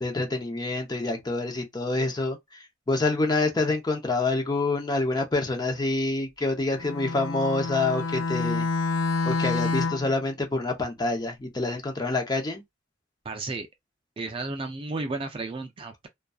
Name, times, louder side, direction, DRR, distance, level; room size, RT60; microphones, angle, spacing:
voice 1, 0.0-8.7 9.3-12.6, left 2 dB, 20° left, 0.7 m, -27 dB
Bowed string instrument, 6.8-10.2, left 3 dB, 85° left, 0.6 m, -28 dB
voice 2, 13.2-13.7 14.2-16.1, right 3 dB, 30° right, 0.3 m, -33 dB
2.6 x 2.2 x 2.3 m
head